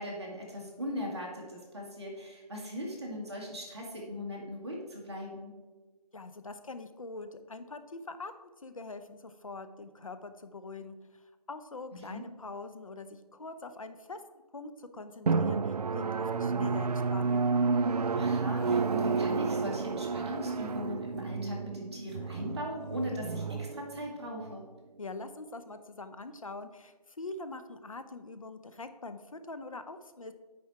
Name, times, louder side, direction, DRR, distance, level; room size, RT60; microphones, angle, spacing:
voice 1, 0.0-5.5 12.1-12.2 18.1-24.6, equal, 40° right, -2 dB, 1.8 m, -39 dB
voice 2, 6.1-8.3 8.6-11.0 11.5-14.2 14.5-17.5 25.0-30.3, left 3 dB, 55° left, 10 dB, 0.7 m, -43 dB
Drum, 15.3-24.5, right 4 dB, 70° right, 0.4 m, -30 dB
9.6 x 4.3 x 4.6 m, 1.3 s
figure-of-eight pair, 170°, 21 cm